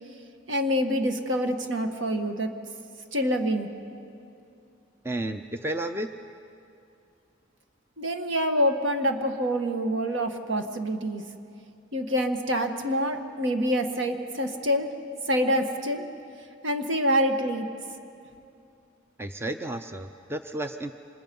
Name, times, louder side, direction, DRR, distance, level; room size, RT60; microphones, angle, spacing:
voice 1, 0.5-2.5 3.1-3.7 8.0-11.2 11.9-14.9 15.3-16.0 16.6-17.7, equal, 70° right, 5 dB, 1.6 m, -26 dB
voice 2, 5.0-6.1 19.2-20.9, right 1 dB, 10° right, 7 dB, 0.6 m, -32 dB
28.0 x 25.5 x 5.4 m, 2.6 s
head